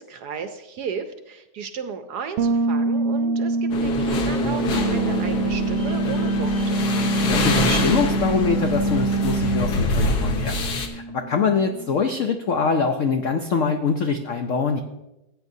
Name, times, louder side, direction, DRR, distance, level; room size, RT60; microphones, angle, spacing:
voice 1, 0.0-6.8, right 6 dB, 70° right, 8 dB, 1.0 m, -34 dB
Bass guitar, 2.4-12.0, right 3 dB, 85° right, 1.5 m, -28 dB
sound 1, 3.7-10.9, left 2 dB, 60° left, 1.5 m, -26 dB
Wind instrument woodwind instrument, 4.5-9.8, right 2 dB, 25° left, 1.4 m, -25 dB
voice 2, 7.2-10.6 10.9-14.8, left 5 dB, 80° left, 5 dB, 0.7 m, -24 dB
16.0 x 8.7 x 2.7 m, 0.92 s
omnidirectional pair, 2.1 m